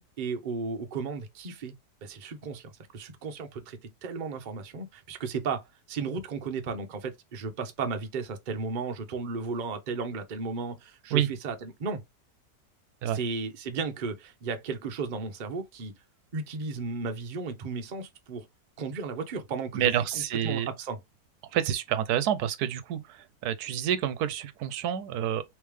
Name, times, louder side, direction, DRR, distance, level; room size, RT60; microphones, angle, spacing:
voice 1, 0.0-1.7 2.0-12.0 13.0-15.9 16.3-18.5 18.8-21.0, right 4 dB, 45° right, 0.7 m, -34 dB
voice 2, 19.7-20.7 21.5-25.4, right 10 dB, 80° right, 1.1 m, -28 dB
3.3 x 3.2 x 3.2 m
omnidirectional pair, 1.7 m